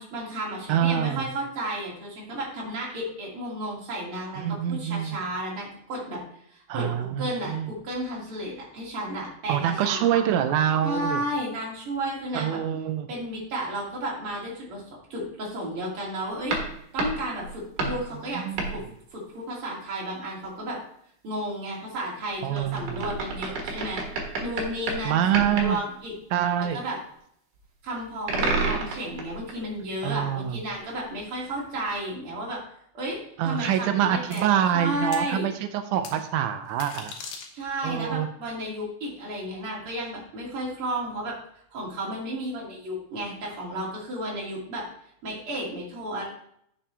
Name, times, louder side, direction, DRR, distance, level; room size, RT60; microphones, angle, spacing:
voice 1, 0.0-6.2 6.5-10.2 10.8-12.6 13.1-14.8 15.1-16.6 16.9-18.4 18.7-18.8 19.1-20.8 21.2-24.0 24.4-26.1 26.7-27.0 27.8-32.6 32.9-34.5 34.7-35.5 37.5-41.4 41.7-44.9 45.2-46.2, right 1 dB, 40° right, -4 dB, 3.1 m, -33 dB
voice 2, 0.7-1.3 4.4-5.2 6.7-7.7 9.5-11.2 12.3-13.1 17.8-18.7 22.4-23.1 25.1-25.8 26.3-26.8 30.0-30.6 33.4-37.1 37.8-38.3, right 10 dB, 90° right, 8 dB, 1.7 m, -26 dB
sound 1, 16.5-18.0 18.6-18.8 22.6-25.1 25.3-25.7 28.3-29.6 31.0-31.1, right 3 dB, 60° right, 2.8 m, -30 dB
sound 2, 34.3-34.4 35.1-35.3 36.0-36.2 36.7-37.9, left 5 dB, 75° left, 2.9 m, -40 dB
10.0 x 6.9 x 3.3 m, 0.70 s
omnidirectional pair, 4.2 m